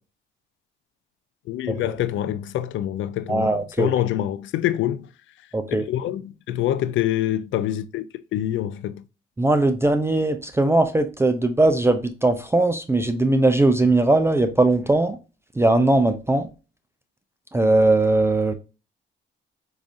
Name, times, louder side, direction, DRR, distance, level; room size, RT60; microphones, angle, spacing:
voice 1, 1.5-5.1 5.8-8.0 8.3-9.0, left 12 dB, 75° left, 0.4 m, -25 dB
voice 2, 3.3-3.9 5.5-5.8 9.4-15.2 15.6-16.5 17.5-18.5, right 2 dB, 15° right, 0.4 m, -20 dB
4.7 x 2.6 x 2.5 m
cardioid pair, 90°, 20 cm